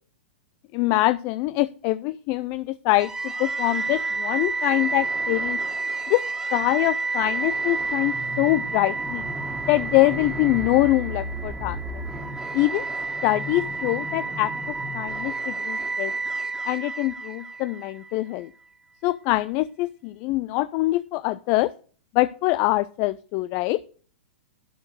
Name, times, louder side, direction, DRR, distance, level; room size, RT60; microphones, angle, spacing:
voice 1, 0.7-3.1 3.4-5.6 6.1-6.2 6.5-9.2 9.7-12.0 12.5-12.9 13.2-14.5 14.9-16.1 16.6-18.5 19.0-21.7 22.1-23.8, left 18 dB, 40° left, 16 dB, 0.4 m, -24 dB
sound 1, 3.0-18.1, right 3 dB, 10° right, 1.8 m, -30 dB
11.5 x 4.5 x 6.1 m, 0.42 s
hypercardioid pair, 115°, 6 cm